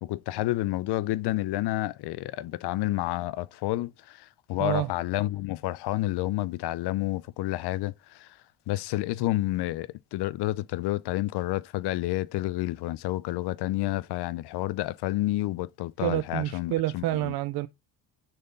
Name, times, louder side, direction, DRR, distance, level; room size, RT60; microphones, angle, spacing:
voice 1, 0.0-8.4 8.7-17.3, left 16 dB, 70° left, 0.6 m, -30 dB
voice 2, 16.0-17.7, right 15 dB, 65° right, 0.5 m, -28 dB
6.7 x 4.2 x 3.9 m
cardioid pair, 125°, 41 cm